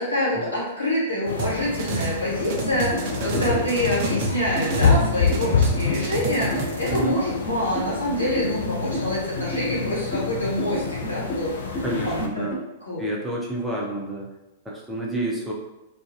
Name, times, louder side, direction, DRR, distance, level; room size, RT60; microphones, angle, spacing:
voice 1, 0.0-12.5 12.8-13.0, left 1 dB, 85° left, -7 dB, 1.3 m, -26 dB
sound 1, 1.3-12.3, left 5 dB, 65° left, 0.4 m, -27 dB
sound 2, 1.4-2.2 2.4-5.0 5.3-7.0, right 6 dB, 50° right, 0.4 m, -30 dB
sound 3, 2.6-12.6, equal, 35° left, 1.1 m, -32 dB
voice 2, 3.2-3.7 6.9-7.1 11.8-12.6 13.0-14.3 14.6-15.5, right 1 dB, 5° right, -4 dB, 0.6 m, -29 dB
2.3 x 2.3 x 2.8 m, 0.98 s
figure-of-eight pair, 100°, 0 cm